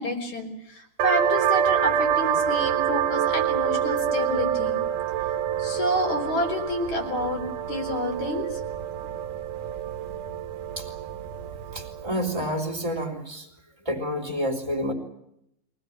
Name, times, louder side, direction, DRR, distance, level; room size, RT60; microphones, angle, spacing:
voice 1, 0.0-4.8 5.6-7.4 7.7-8.6, left 1 dB, 55° left, 3 dB, 5.2 m, -29 dB
sound 1, 1.0-12.3, right 9 dB, 75° right, 2.6 m, -27 dB
voice 2, 11.7-13.5 13.8-14.9, equal, 10° right, 1 dB, 3.3 m, -29 dB
23.5 x 18.5 x 9.9 m, 0.80 s
omnidirectional pair, 3.9 m